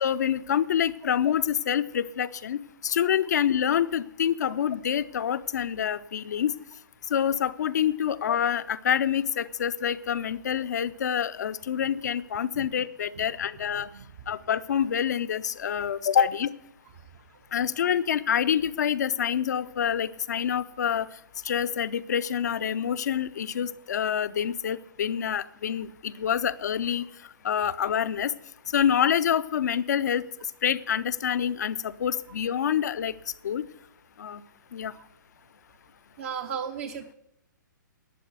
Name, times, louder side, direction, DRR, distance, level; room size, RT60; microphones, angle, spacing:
voice 1, 0.0-6.5 7.1-13.9 14.3-16.5 17.5-21.1 21.4-27.1 27.4-28.3 28.7-30.3 30.6-33.1 33.4-33.6 34.2-34.4 34.7-34.9, left 9 dB, 55° left, 14 dB, 0.7 m, -27 dB
voice 2, 36.2-37.1, right 7 dB, 40° right, 5 dB, 0.9 m, -35 dB
12.0 x 8.4 x 8.0 m, 0.79 s
figure-of-eight pair, 125°, 11 cm